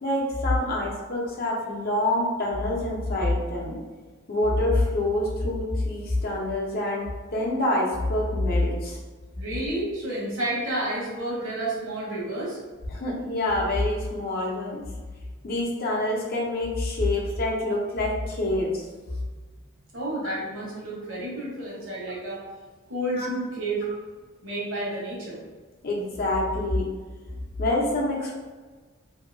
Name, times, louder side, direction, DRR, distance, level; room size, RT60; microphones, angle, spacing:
voice 1, 0.0-3.8 4.3-9.0 12.9-14.8 15.4-18.9 20.2-20.3 23.2-23.3 25.8-26.9 27.6-28.3, left 1 dB, 50° left, -2 dB, 0.6 m, -26 dB
voice 2, 9.4-12.6 19.9-22.4 22.9-23.8 24.4-25.4, right 1 dB, 65° right, -5 dB, 1.1 m, -30 dB
2.7 x 2.7 x 2.6 m, 1.4 s
head